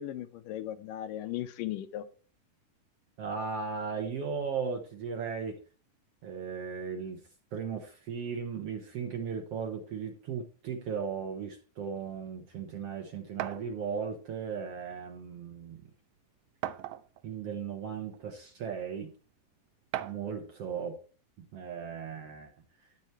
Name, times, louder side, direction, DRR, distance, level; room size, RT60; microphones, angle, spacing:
voice 1, 0.0-2.1, left 12 dB, 80° left, 11 dB, 2.3 m, -37 dB
voice 2, 3.2-5.6 6.2-7.2 7.5-15.9 17.2-19.1 20.0-21.0 21.4-22.5, right 6 dB, 60° right, 3 dB, 1.7 m, -36 dB
sound 1, 13.4-13.7 14.8-14.9 15.3-15.4 16.6-17.3 18.1-18.2 19.9-20.3, right 12 dB, 80° right, 1.7 m, -36 dB
12.0 x 9.2 x 3.2 m, 0.37 s
omnidirectional pair, 4.0 m